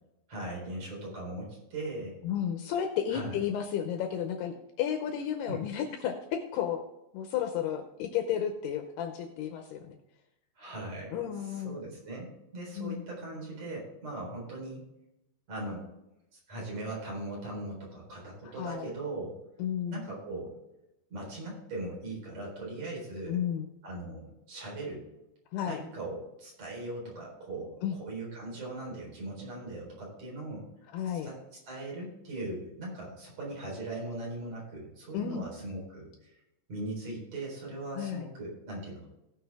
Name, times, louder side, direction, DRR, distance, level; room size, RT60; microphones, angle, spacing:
voice 1, 0.3-2.2 3.1-3.4 5.5-5.6 10.6-14.8 15.5-15.9 16.3-19.4 19.9-20.5 21.1-23.4 23.8-25.0 25.6-30.6 31.0-31.4 31.6-36.3 36.7-39.1, right 2 dB, 35° right, -3 dB, 4.8 m, -39 dB
voice 2, 2.2-6.8 7.1-10.0 11.1-11.8 12.8-13.0 18.4-18.9 19.6-20.1 23.3-23.7 25.5-25.8 27.8-28.0 30.9-31.3 35.1-35.5 38.0-38.3, left 9 dB, 80° left, 6 dB, 2.3 m, -32 dB
17.5 x 6.3 x 3.5 m, 0.89 s
omnidirectional pair, 5.4 m